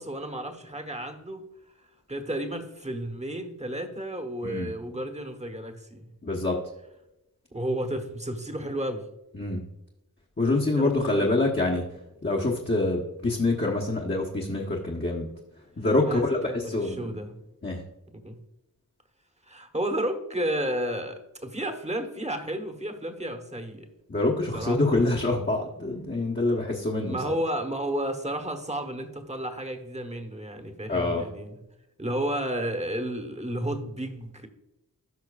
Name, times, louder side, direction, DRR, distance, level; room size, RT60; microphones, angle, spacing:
voice 1, 0.0-1.4 2.1-6.1 7.5-9.0 10.6-11.3 16.0-17.4 18.1-18.4 19.4-23.9 24.5-25.3 27.0-31.6 32.0-34.5, right 1 dB, 20° right, 6 dB, 1.1 m, -32 dB
voice 2, 6.2-6.6 9.3-9.6 10.4-11.8 12.2-15.3 15.8-17.0 17.6-17.8 24.1-27.2 30.9-31.2, left 2 dB, 30° left, -4 dB, 1.1 m, -26 dB
14.0 x 5.8 x 2.4 m, 0.90 s
wide cardioid pair, 65°, 36 cm